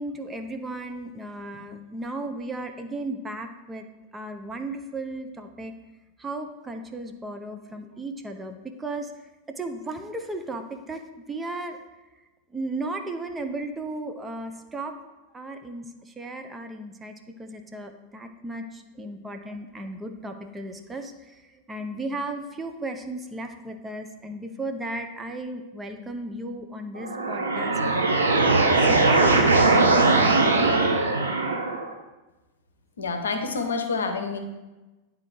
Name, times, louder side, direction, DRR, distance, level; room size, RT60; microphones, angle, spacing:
voice 1, 0.0-3.8 4.1-5.7 6.2-9.1 9.6-11.0 11.3-11.8 12.5-15.0 15.3-21.1 21.7-27.7 28.4-29.5, right 2 dB, 15° right, 5 dB, 0.6 m, -35 dB
sound 1, 26.9-31.9, right 3 dB, 75° right, 0.8 m, -20 dB
voice 2, 33.0-34.4, left 4 dB, 70° left, 6 dB, 0.7 m, -28 dB
9.6 x 3.7 x 4.7 m, 1.1 s
figure-of-eight pair, 90°, 0 cm